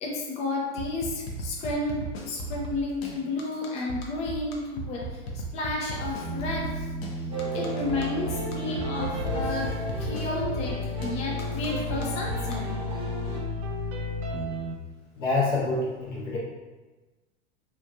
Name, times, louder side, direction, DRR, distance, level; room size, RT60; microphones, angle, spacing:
voice 1, 0.0-6.9 7.5-12.7, left 2 dB, 20° left, -2 dB, 0.4 m, -32 dB
sound 1, 0.8-12.5, right 1 dB, 55° left, 0.6 m, -36 dB
sound 2, 6.2-14.8, left 2 dB, 65° right, 0.5 m, -33 dB
sound 3, 7.3-13.4, right 2 dB, 15° right, 0.7 m, -36 dB
voice 2, 15.2-16.4, left 3 dB, 70° left, -5 dB, 1.1 m, -26 dB
3.0 x 2.4 x 2.3 m, 1.2 s
hypercardioid pair, 85°, 37 cm